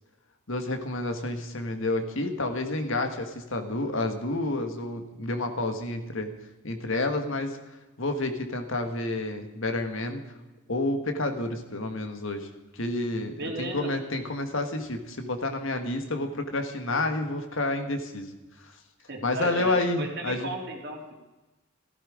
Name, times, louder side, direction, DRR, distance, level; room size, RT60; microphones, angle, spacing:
voice 1, 0.5-6.3 6.6-7.6 8.0-10.2 10.7-18.3 18.6-18.7 19.2-20.5, left 2 dB, 65° left, 6 dB, 1.6 m, -29 dB
voice 2, 13.4-13.9 19.1-21.2, right 2 dB, 50° right, 0 dB, 3.1 m, -35 dB
16.0 x 14.5 x 5.0 m, 1.1 s
head